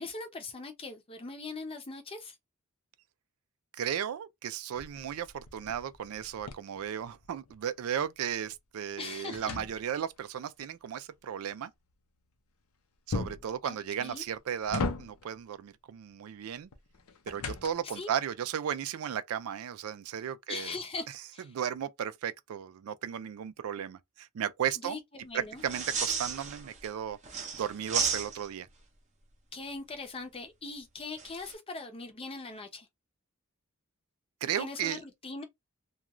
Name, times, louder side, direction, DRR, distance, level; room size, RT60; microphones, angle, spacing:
voice 1, 0.0-2.4 9.0-9.6 13.6-14.2 17.8-18.1 20.5-21.1 21.3-21.5 24.8-25.6 29.5-32.9 34.6-35.4, left 3 dB, 25° left, 0.6 m, -41 dB
voice 2, 3.7-11.7 13.1-16.7 17.3-20.8 21.5-25.0 25.3-28.7 34.4-35.0, right 9 dB, 75° right, 0.3 m, -35 dB
sound 1, 4.7-7.6 8.0-10.3 13.1-13.6 14.2-15.4 16.7-18.1, left 3 dB, 85° left, 0.6 m, -38 dB
sound 2, 25.6-26.9 27.2-28.7 31.2-31.5, right 5 dB, 35° right, 0.6 m, -33 dB
2.4 x 2.3 x 2.9 m
head